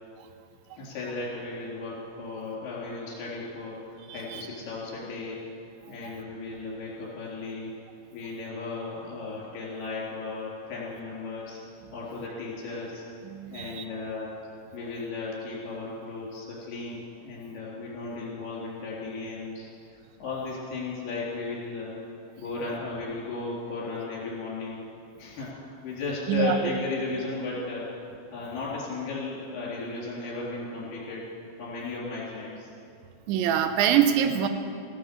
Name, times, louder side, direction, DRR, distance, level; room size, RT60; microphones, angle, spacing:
voice 1, 0.8-5.4 5.9-7.7 8.1-11.6 11.9-13.1 13.5-14.3 14.7-19.7 20.2-22.0 22.4-24.8 25.2-25.5 25.8-27.9 28.3-31.2 31.6-32.7, left 3 dB, 60° left, -4 dB, 5.7 m, -35 dB
voice 2, 4.1-4.4 13.2-13.8 26.3-26.6 33.3-34.5, right 9 dB, 85° right, 8 dB, 3.1 m, -24 dB
16.0 x 12.0 x 7.1 m, 2.5 s
omnidirectional pair, 5.2 m